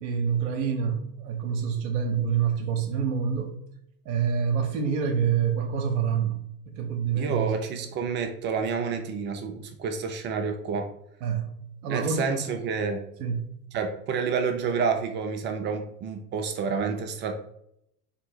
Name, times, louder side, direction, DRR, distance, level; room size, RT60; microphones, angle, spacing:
voice 1, 0.0-3.6 4.1-6.4 6.7-7.6 11.2-11.5 11.8-12.3 13.2-13.4, right 7 dB, 50° right, 4 dB, 0.8 m, -27 dB
voice 2, 7.1-10.9 11.9-13.0 13.7-17.3, right 5 dB, 25° right, 5 dB, 0.5 m, -29 dB
4.4 x 2.9 x 4.1 m, 0.72 s
figure-of-eight pair, 80°, 48 cm